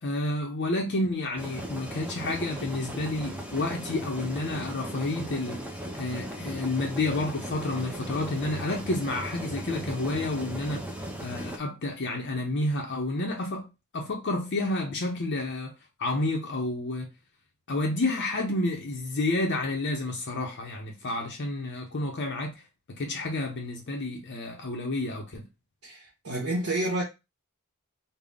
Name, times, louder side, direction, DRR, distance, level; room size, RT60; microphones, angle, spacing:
voice 1, 0.0-10.8 11.2-13.7 13.9-15.7 16.0-17.1 17.7-22.5 22.9-25.5, left 2 dB, 50° left, 0.6 m, -30 dB
sound 1, 1.4-11.6, right 1 dB, 5° right, 0.6 m, -37 dB
voice 2, 25.8-27.0, right 1 dB, 65° right, 1.0 m, -29 dB
3.8 x 2.1 x 3.4 m
head